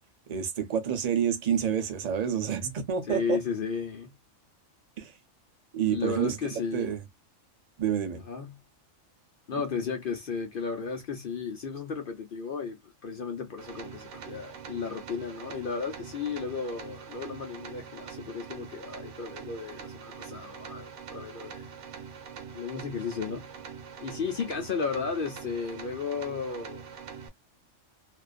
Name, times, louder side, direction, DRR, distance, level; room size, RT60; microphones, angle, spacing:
voice 1, 0.3-3.4 5.0-5.1 5.7-6.4 6.7-7.0 7.8-8.2, right 8 dB, 45° right, 0.5 m, -28 dB
voice 2, 3.1-4.1 5.9-6.9 8.2-8.6 9.5-21.7 22.5-23.4 24.0-26.8, left 5 dB, 55° left, 0.7 m, -34 dB
sound 1, 13.6-27.3, right 7 dB, 65° right, 1.0 m, -44 dB
2.5 x 2.3 x 2.3 m
omnidirectional pair, 1.4 m